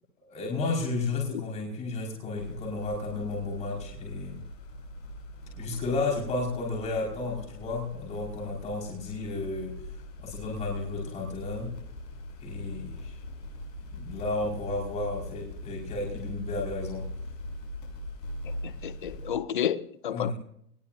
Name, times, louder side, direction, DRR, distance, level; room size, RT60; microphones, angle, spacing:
voice 1, 0.2-4.4 5.5-9.8 10.2-11.7 12.4-13.2 14.0-17.1 20.1-20.3, left 3 dB, 15° left, 5.3 m, -32 dB
sound 1, 2.3-19.3, left 1 dB, 85° left, 6.8 m, -41 dB
voice 2, 18.6-20.3, left 9 dB, 30° left, 0.6 m, -31 dB
24.0 x 19.5 x 2.7 m
hypercardioid pair, 170°, 49 cm